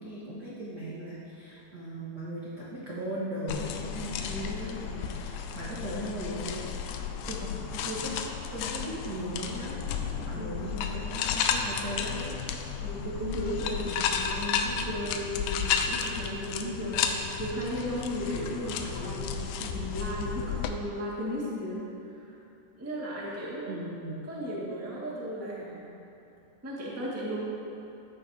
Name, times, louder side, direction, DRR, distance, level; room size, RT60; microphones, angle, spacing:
voice 1, 0.0-6.7 7.2-8.1 8.5-12.3 23.7-24.2, right 1 dB, 55° right, -8 dB, 1.1 m, -38 dB
sound 1, 3.5-20.7, left 7 dB, 80° left, 2.3 m, -33 dB
voice 2, 12.8-22.4 22.8-23.8 24.2-25.9 26.6-27.4, equal, 10° right, -7 dB, 0.8 m, -35 dB
14.5 x 8.9 x 2.8 m, 2.8 s
omnidirectional pair, 4.1 m